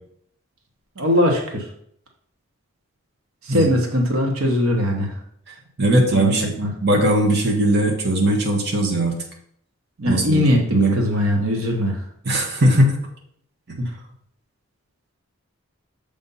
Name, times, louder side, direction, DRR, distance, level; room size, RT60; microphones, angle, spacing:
voice 1, 1.0-1.7 3.4-5.1 6.1-6.7 10.0-12.0 13.8-13.9, left 1 dB, 80° right, 2 dB, 1.1 m, -21 dB
voice 2, 5.8-9.1 10.0-10.4 10.7-11.0 12.3-13.0, right 1 dB, 50° right, 0 dB, 1.1 m, -19 dB
6.7 x 3.5 x 5.4 m, 0.67 s
head